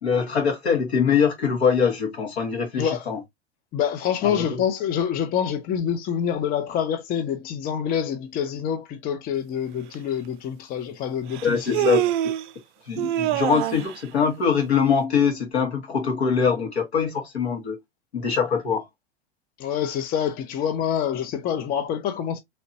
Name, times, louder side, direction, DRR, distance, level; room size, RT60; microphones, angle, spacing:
voice 1, 0.0-3.2 4.2-4.6 11.4-12.0 12.9-17.8 18.1-18.9, left 6 dB, 75° left, 1.7 m, -23 dB
voice 2, 2.7-3.0 3.7-11.9 19.6-22.4, left 8 dB, 30° left, 0.6 m, -26 dB
Human voice, 9.9-10.0 11.3-12.5 13.0-14.0, right 13 dB, 50° right, 0.4 m, -25 dB
3.2 x 2.9 x 2.7 m
figure-of-eight pair, 90°, 32 cm